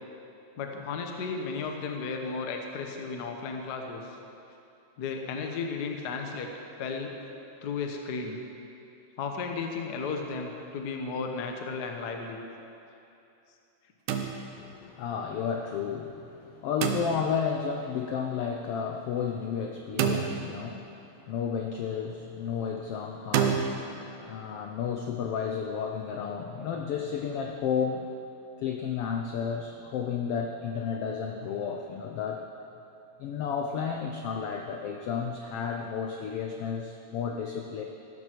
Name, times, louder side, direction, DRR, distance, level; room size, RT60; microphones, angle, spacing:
voice 1, 0.6-4.0 5.0-6.5 6.8-7.1 7.6-8.4 9.2-12.4, left 4 dB, 65° left, 3 dB, 0.9 m, -34 dB
sound 1, 14.1-14.8 16.8-17.5 20.0-20.9 23.3-23.7, right 8 dB, 80° right, 2.3 m, -28 dB
voice 2, 14.6-28.1 28.6-32.4 33.2-37.8, left 6 dB, 85° left, 3 dB, 1.3 m, -32 dB
15.0 x 12.5 x 4.5 m, 2.7 s
omnidirectional pair, 3.5 m